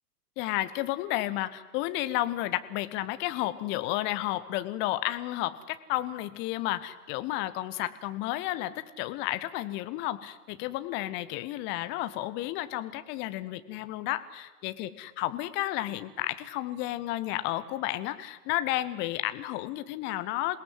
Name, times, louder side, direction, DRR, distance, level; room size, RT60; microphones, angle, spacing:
voice 1, 0.4-20.6, left 15 dB, 25° left, 12 dB, 0.9 m, -32 dB
27.5 x 18.0 x 7.7 m, 1.2 s
figure-of-eight pair, 105°, 48 cm